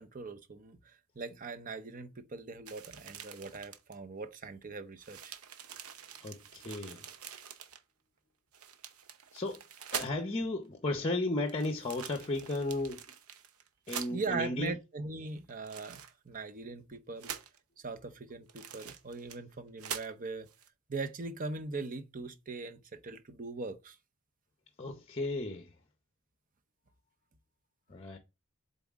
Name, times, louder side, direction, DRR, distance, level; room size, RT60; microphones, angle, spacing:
voice 1, 0.0-5.3 14.1-16.0 16.2-17.3 17.8-20.5 20.9-24.0, right 3 dB, 40° right, 0.7 m, -40 dB
sound 1, 2.7-3.9 4.6-4.7 5.0-7.8 8.5-10.3 11.5-14.1 15.5-16.4 17.2-17.6 18.5-19.5 19.8-20.1 20.5-20.7, right 8 dB, 90° right, 0.8 m, -45 dB
voice 2, 6.2-7.0 9.3-9.6 9.9-13.0 13.9-14.7 24.8-25.7 27.9-28.2, left 2 dB, 25° left, 0.6 m, -34 dB
7.6 x 4.1 x 3.5 m
head